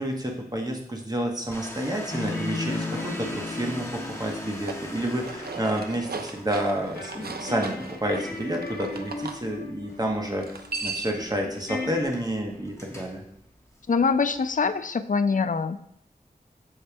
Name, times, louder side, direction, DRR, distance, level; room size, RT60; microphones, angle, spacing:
voice 1, 0.0-7.7 8.0-13.2, right 1 dB, 25° right, 1 dB, 1.1 m, -29 dB
Domestic sounds home sounds, 1.5-14.6, equal, 15° left, 1.2 m, -44 dB
sound 1, 2.1-6.2 7.0-12.0, left 3 dB, 85° left, 0.9 m, -36 dB
sound 2, 4.5-9.4 10.4-11.3, right 4 dB, 75° right, 0.5 m, -37 dB
voice 2, 13.9-15.8, left 5 dB, 55° left, 11 dB, 0.4 m, -24 dB
6.7 x 4.2 x 3.4 m, 0.72 s
wide cardioid pair, 65°, 16 cm